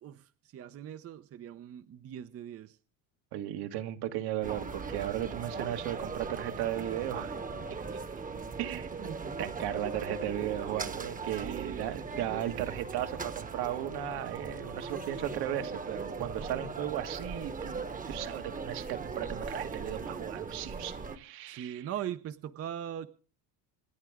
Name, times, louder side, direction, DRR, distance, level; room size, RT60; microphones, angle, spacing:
voice 1, 0.0-2.8 11.3-11.9 16.4-16.5 21.5-23.1, right 10 dB, 35° right, 0.7 m, -40 dB
voice 2, 3.3-7.4 7.7-7.8 8.6-21.8, right 12 dB, 70° right, 1.8 m, -36 dB
sound 1, 4.4-21.2, right 4 dB, 20° right, 1.1 m, -39 dB
26.5 x 11.0 x 3.6 m
cardioid pair, 140°, 41 cm